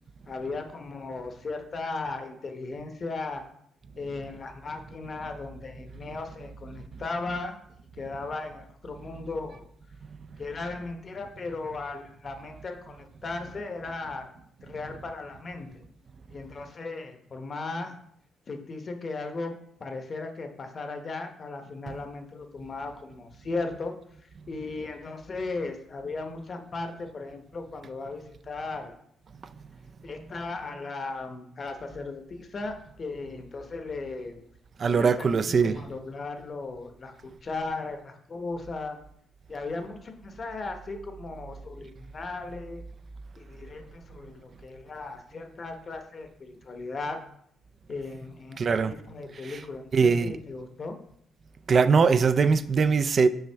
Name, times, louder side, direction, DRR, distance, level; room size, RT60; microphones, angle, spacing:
voice 1, 0.3-3.4 4.0-7.6 8.0-9.7 10.4-14.3 14.6-15.7 16.3-18.0 18.5-19.5 19.8-23.9 24.5-28.9 30.0-34.4 34.8-39.0 39.5-42.8 43.4-47.2 47.9-51.0, left 3 dB, 40° left, 0.9 m, -36 dB
voice 2, 34.8-35.8 48.6-48.9 49.4-49.5 49.9-50.4 51.7-53.3, right 5 dB, 45° right, 0.3 m, -21 dB
5.6 x 5.1 x 3.4 m
cardioid pair, 90°, 0 cm